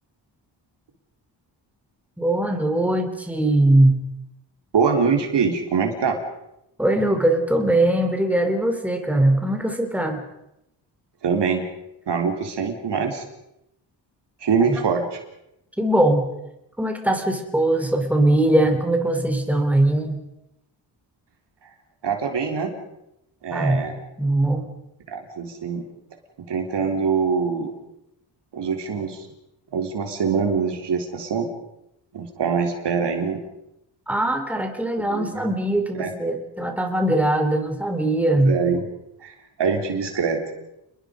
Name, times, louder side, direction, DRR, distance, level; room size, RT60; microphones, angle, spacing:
voice 1, 2.2-4.0 6.8-10.2 14.7-14.8 15.8-16.3 16.8-20.2 23.5-23.8 24.2-24.7 34.1-38.6, right 1 dB, 5° right, 4 dB, 3.5 m, -21 dB
voice 2, 4.7-6.2 11.2-11.6 12.1-13.2 14.4-15.2 22.0-22.7 23.4-24.0 25.1-25.8 26.5-27.7 28.5-29.3 29.7-31.5 32.1-33.4 35.1-35.4 36.0-36.1 38.4-38.8 39.2-40.4, right 5 dB, 65° right, 4 dB, 3.7 m, -24 dB
28.5 x 21.0 x 5.1 m, 0.85 s
cardioid pair, 90°, 44 cm